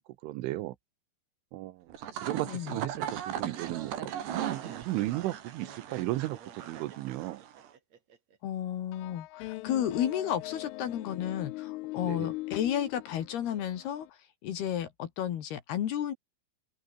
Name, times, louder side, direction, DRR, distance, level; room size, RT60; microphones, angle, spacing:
voice 1, 0.2-0.8 1.5-1.9 2.2-7.4 12.0-12.3, right 17 dB, 75° right, 3.3 m, -35 dB
sound 1, 1.9-7.7, right 10 dB, 60° right, 4.3 m, -38 dB
voice 2, 2.4-2.8 8.4-14.1 14.4-16.1, left 10 dB, 60° left, 3.4 m, -32 dB
Laughter, 3.3-8.4, right 7 dB, 40° right, 3.2 m, -51 dB
sound 2, 8.9-14.1, left 20 dB, 85° left, 3.2 m, -40 dB
open air
omnidirectional pair, 5.8 m